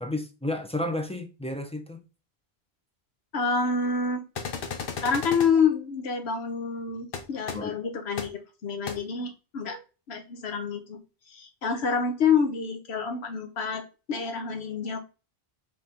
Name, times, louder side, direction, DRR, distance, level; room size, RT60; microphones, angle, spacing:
voice 1, 0.0-2.0 7.5-7.8, left 1 dB, 10° left, 0.4 m, -32 dB
voice 2, 3.3-4.2 5.0-9.8 10.1-11.0 11.3-13.8 14.1-15.0, left 5 dB, 85° left, 1.2 m, -27 dB
sound 1, 4.3-5.5 7.1-7.2 7.5-7.6 8.2-8.3 8.9-9.0, left 6 dB, 65° left, 0.9 m, -33 dB
5.1 x 3.5 x 2.9 m
omnidirectional pair, 1.1 m